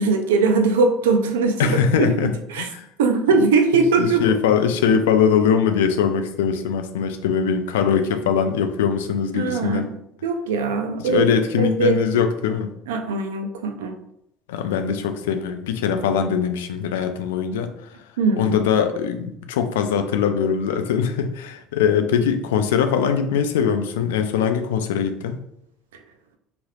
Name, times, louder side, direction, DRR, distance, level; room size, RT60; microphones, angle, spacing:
voice 1, 0.0-2.7 3.0-4.2 4.9-5.0 9.3-9.8 10.2-11.3 11.6-12.0 12.9-14.0 18.2-18.6, right 4 dB, 85° right, 5 dB, 0.4 m, -21 dB
voice 2, 1.6-2.3 2.6-2.9 4.0-9.9 11.0-12.7 14.5-17.7 18.4-25.4, left 7 dB, 85° left, 7 dB, 0.3 m, -21 dB
3.2 x 2.9 x 2.4 m, 0.75 s
hypercardioid pair, 80°, 0 cm